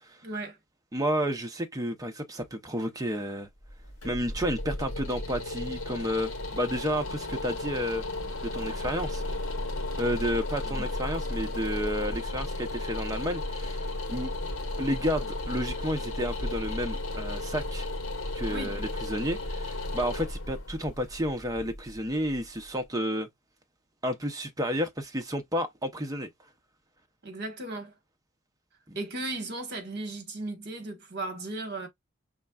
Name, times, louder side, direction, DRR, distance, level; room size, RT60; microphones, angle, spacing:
voice 1, 0.2-0.6 18.5-18.8 27.2-27.9 28.9-31.9, right 2 dB, 50° right, 1.2 m, -36 dB
voice 2, 0.9-3.5 4.0-8.1 8.4-9.2 10.0-14.3 14.8-17.9 18.3-23.3 24.0-26.3 28.9-29.0, equal, 15° right, 0.6 m, -31 dB
sound 1, 3.6-22.6, left 2 dB, 65° left, 1.4 m, -34 dB
5.2 x 3.3 x 2.3 m
head